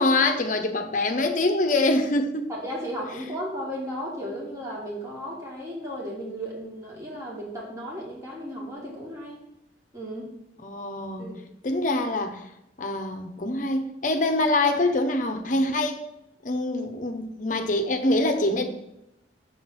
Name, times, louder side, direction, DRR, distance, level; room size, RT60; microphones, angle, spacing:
voice 1, 0.0-2.5 10.6-11.3 11.6-12.4 12.8-16.0 16.4-18.6, left 2 dB, 45° left, 6 dB, 0.8 m, -24 dB
voice 2, 2.5-9.4 9.9-10.3 11.2-11.4, equal, 20° right, -4 dB, 2.0 m, -35 dB
7.0 x 3.9 x 6.0 m, 0.84 s
head